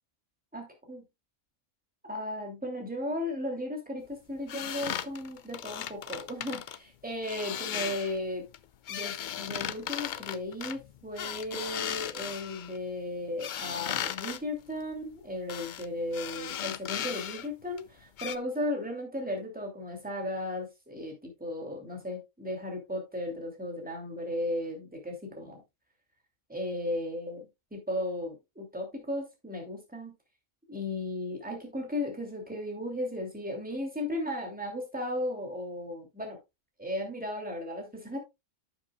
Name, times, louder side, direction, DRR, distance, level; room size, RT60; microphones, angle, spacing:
voice 1, 0.5-1.0 2.0-8.5 8.9-25.6 26.5-30.1 30.7-36.4 36.8-38.2, left 1 dB, 5° right, 2.8 m, -35 dB
sound 1, 4.5-6.8 7.2-8.2 8.5-12.8 13.4-14.4 15.5-15.9 16.1-17.5 17.8-17.9 18.2-18.4, left 9 dB, 65° left, 0.5 m, -36 dB
11.0 x 7.5 x 2.3 m
omnidirectional pair, 1.3 m